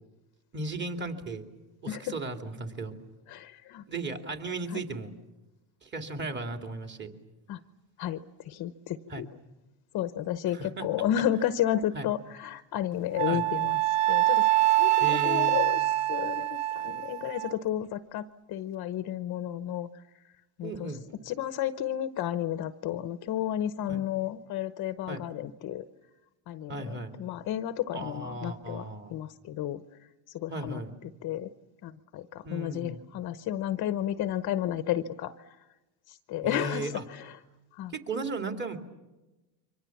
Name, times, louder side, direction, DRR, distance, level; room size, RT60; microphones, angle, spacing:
voice 1, 0.5-1.4 1.8-3.0 3.9-5.1 5.8-7.1 9.1-9.3 10.5-10.9 11.9-12.1 13.2-13.4 15.0-15.6 20.6-21.0 23.9-24.0 25.1-25.2 26.7-27.1 27.9-29.2 30.5-31.0 32.4-33.0 36.4-37.0 37.9-38.8, right 2 dB, 20° right, 5 dB, 2.6 m, -36 dB
voice 2, 3.3-3.8 7.5-7.6 8.0-9.3 9.9-13.8 14.1-14.4 14.7-15.8 16.1-19.9 20.6-20.9 21.3-25.8 26.5-28.8 29.1-29.8 30.3-30.8 31.2-31.5 31.8-35.3 36.1-37.3 37.8-37.9, left 11 dB, 40° left, 12 dB, 0.9 m, -32 dB
Wind instrument woodwind instrument, 13.2-17.5, right 16 dB, 55° right, 0.8 m, -25 dB
28.5 x 24.5 x 7.2 m, 1.1 s
cardioid pair, 140°, 49 cm